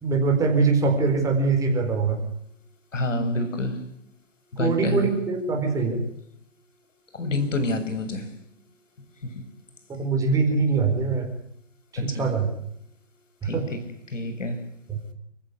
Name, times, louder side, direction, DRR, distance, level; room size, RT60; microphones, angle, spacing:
voice 1, 0.0-2.2 4.6-6.0 9.9-11.2 12.0-12.5 13.5-13.6 14.9-15.0, right 4 dB, 10° right, 2 dB, 4.5 m, -23 dB
voice 2, 2.9-3.8 4.5-5.1 7.1-8.3 9.2-9.3 12.0-12.3 13.4-13.8 14.1-14.6, left 1 dB, 80° left, 10 dB, 7.2 m, -27 dB
29.0 x 16.0 x 9.7 m, 0.72 s
hypercardioid pair, 155°, 37 cm